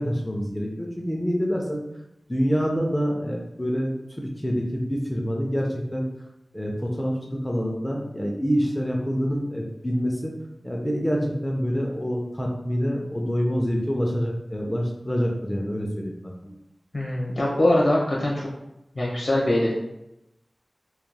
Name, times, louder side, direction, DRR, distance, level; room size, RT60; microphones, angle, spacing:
voice 1, 0.0-1.8 2.3-6.0 6.5-10.3 10.6-16.5, equal, 15° left, -1 dB, 0.5 m, -26 dB
voice 2, 16.9-18.5 18.9-19.7, left 1 dB, 70° left, -4 dB, 0.9 m, -22 dB
3.0 x 2.3 x 2.2 m, 0.87 s
cardioid pair, 40°, 0 cm